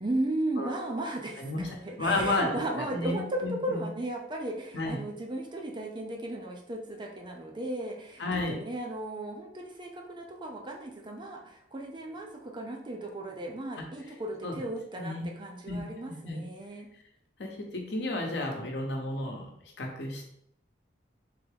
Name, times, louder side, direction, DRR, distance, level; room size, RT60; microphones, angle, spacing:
voice 1, 0.0-8.2 8.5-16.9, right 1 dB, 25° right, 1 dB, 0.7 m, -35 dB
voice 2, 1.4-1.7 2.0-3.9 4.7-5.0 8.2-8.6 13.8-13.9 14.4-14.6 15.0-15.3 15.7-16.4 17.4-19.5 19.8-20.3, left 2 dB, 75° left, 1 dB, 0.9 m, -32 dB
3.8 x 3.4 x 3.4 m, 0.71 s
head